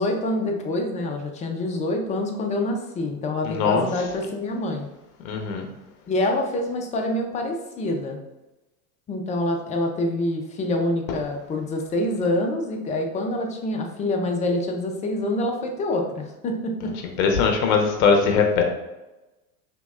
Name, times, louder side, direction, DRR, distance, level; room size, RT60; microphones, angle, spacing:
voice 1, 0.0-4.9 6.1-8.2 9.1-17.0, left 1 dB, 15° left, 3 dB, 0.4 m, -26 dB
voice 2, 3.4-4.1 5.2-5.7 16.8-16.9 17.2-18.6, left 5 dB, 60° left, 3 dB, 0.9 m, -21 dB
5.1 x 3.0 x 2.3 m, 1.0 s
hypercardioid pair, 110°, 46 cm